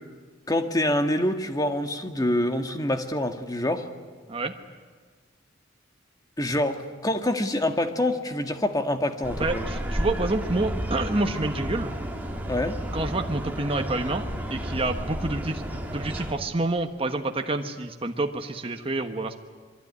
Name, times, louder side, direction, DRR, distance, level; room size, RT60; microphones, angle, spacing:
voice 1, 0.5-3.9 6.4-9.7 12.5-12.8, left 1 dB, 20° left, 6 dB, 1.7 m, -26 dB
sound 1, 9.2-16.3, equal, 10° right, 2.6 m, -32 dB
voice 2, 9.4-11.9 12.9-19.3, right 2 dB, 30° right, 5 dB, 1.3 m, -28 dB
26.0 x 22.5 x 9.8 m, 1.5 s
head